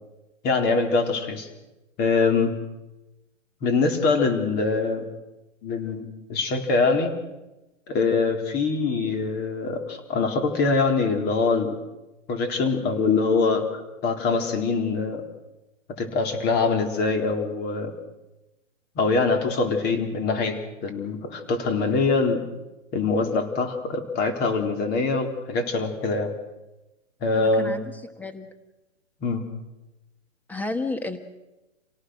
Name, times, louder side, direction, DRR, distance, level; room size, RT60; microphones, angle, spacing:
voice 1, 0.4-1.5 2.0-2.6 3.6-5.1 5.6-7.1 7.9-11.8 12.3-15.2 16.0-17.9 19.0-22.4 22.9-26.3 27.2-27.7 29.2-29.5, left 4 dB, 25° left, 5 dB, 4.1 m, -24 dB
voice 2, 27.3-28.5 30.5-31.2, left 3 dB, 5° left, 8 dB, 1.7 m, -31 dB
28.5 x 18.0 x 6.5 m, 1.0 s
hypercardioid pair, 145°, 38 cm